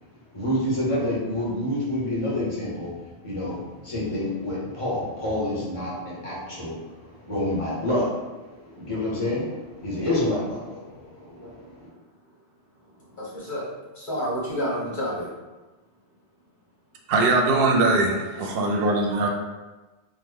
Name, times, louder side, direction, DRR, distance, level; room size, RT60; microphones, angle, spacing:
voice 1, 0.3-11.9, left 1 dB, 30° left, -7 dB, 1.0 m, -28 dB
voice 2, 13.1-13.7 13.9-15.3, equal, 50° left, -7 dB, 1.2 m, -29 dB
voice 3, 17.1-19.3, right 2 dB, 65° right, 1 dB, 0.7 m, -21 dB
3.1 x 2.1 x 3.5 m, 1.2 s
omnidirectional pair, 1.1 m